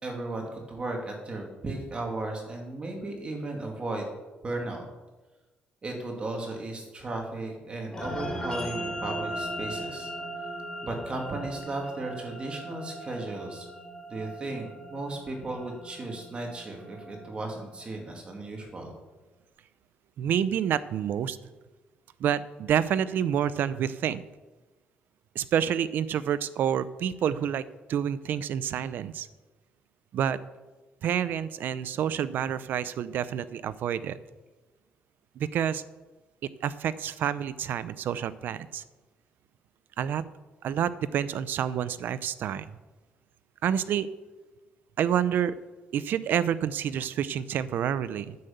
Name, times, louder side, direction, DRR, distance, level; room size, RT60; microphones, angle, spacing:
voice 1, 0.0-4.1 4.4-4.8 5.8-10.1 10.8-13.7 14.1-18.9, right 2 dB, 30° right, 1 dB, 2.2 m, -35 dB
sound 1, 7.9-18.5, right 1 dB, 20° left, 3.1 m, -38 dB
voice 2, 20.2-21.4 22.2-24.2 25.3-27.6 27.9-29.3 30.1-30.4 31.0-34.2 35.4-35.8 36.6-38.8 40.0-40.2 40.6-42.7 43.6-44.1 45.0-45.5 45.9-48.4, right 9 dB, 70° right, 15 dB, 0.6 m, -28 dB
9.5 x 7.8 x 6.8 m, 1.2 s
cardioid pair, 115°, 3 cm